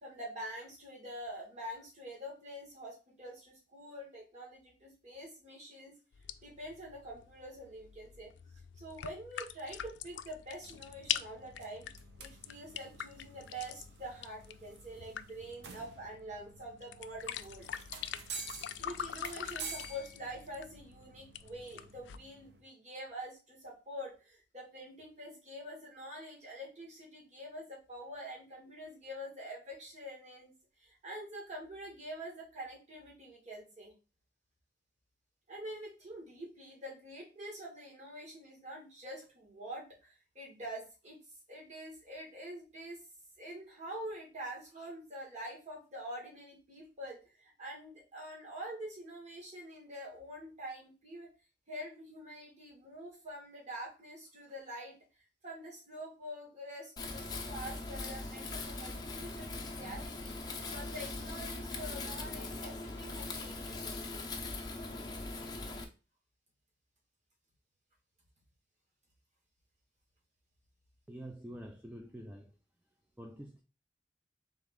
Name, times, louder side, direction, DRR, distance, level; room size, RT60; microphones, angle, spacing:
voice 1, 0.0-5.9 6.4-8.3 8.8-11.9 12.2-17.7 18.8-30.5 30.8-33.9 35.5-41.2 41.5-43.0 43.4-51.3 51.7-55.0 55.4-60.4 60.7-64.3, equal, 40° right, 1.7 m, -46 dB
sound 1, 6.1-22.2, left 10 dB, 85° left, 0.3 m, -44 dB
sound 2, 10.6-22.6, right 4 dB, 75° right, 0.7 m, -50 dB
Wind, 57.0-65.8, left 2 dB, 25° left, 0.7 m, -41 dB
voice 2, 71.1-72.6 73.2-73.6, right 1 dB, 10° right, 0.4 m, -47 dB
3.8 x 3.2 x 3.7 m
head